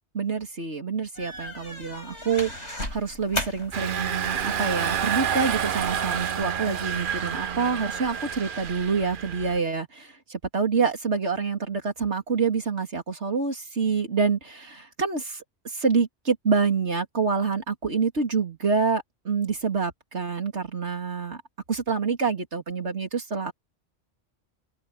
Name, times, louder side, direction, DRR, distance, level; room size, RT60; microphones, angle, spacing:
voice 1, 0.1-21.4 21.7-23.5, right 5 dB, 80° right, 3.3 m, -27 dB
sound 1, 1.1-6.3, left 1 dB, 85° left, 7.4 m, -37 dB
Engine, 3.7-9.6, right 8 dB, 55° right, 0.9 m, -29 dB
open air
omnidirectional pair, 1.1 m